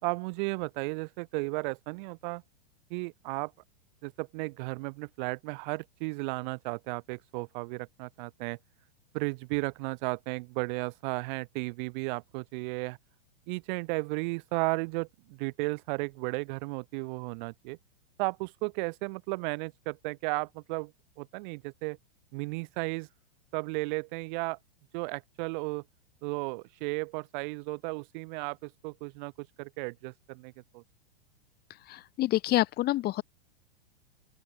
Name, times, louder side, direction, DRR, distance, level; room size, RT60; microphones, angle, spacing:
voice 1, 0.0-2.4 2.9-3.5 4.0-8.6 9.1-13.0 13.5-17.8 18.2-20.9 21.2-22.0 22.3-23.1 23.5-24.6 24.9-25.8 26.2-30.8, right 28 dB, 50° right, 4.6 m, -34 dB
voice 2, 31.9-33.2, left 16 dB, 30° left, 1.3 m, -27 dB
open air
hypercardioid pair, 115°, 31 cm